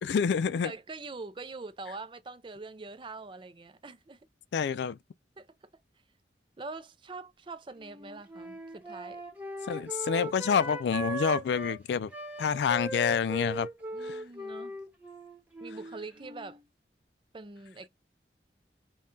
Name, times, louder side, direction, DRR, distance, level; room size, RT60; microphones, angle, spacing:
voice 1, 0.0-0.7 4.5-5.0 9.7-12.1 12.4-13.7 14.0-14.2, left 6 dB, 75° left, 0.3 m, -28 dB
voice 2, 0.6-4.2 5.4-5.5 6.6-9.2 13.9-14.8 15.6-16.6 17.3-17.9, right 3 dB, 30° right, 0.4 m, -43 dB
Wind instrument woodwind instrument, 7.8-11.8 12.1-16.6, right 2 dB, 10° right, 1.0 m, -39 dB
5.4 x 2.3 x 2.6 m
head